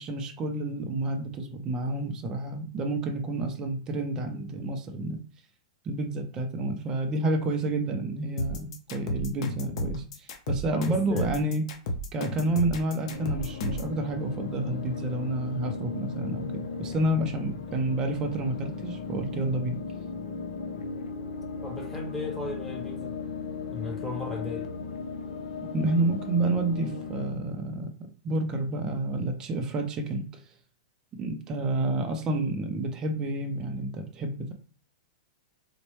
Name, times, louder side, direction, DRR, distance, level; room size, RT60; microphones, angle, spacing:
voice 1, 0.0-5.2 5.8-11.6 12.1-19.8 25.7-27.9 28.2-30.5 31.2-34.5, right 2 dB, 20° right, 0.5 m, -29 dB
sound 1, 8.4-13.9, left 1 dB, 55° left, 0.9 m, -32 dB
voice 2, 10.7-11.3 21.6-23.1 23.7-24.7, left 2 dB, 10° left, 1.0 m, -36 dB
sound 2, 13.0-27.3, left 5 dB, 85° left, 0.7 m, -37 dB
4.1 x 2.1 x 3.1 m
hypercardioid pair, 155°, 4 cm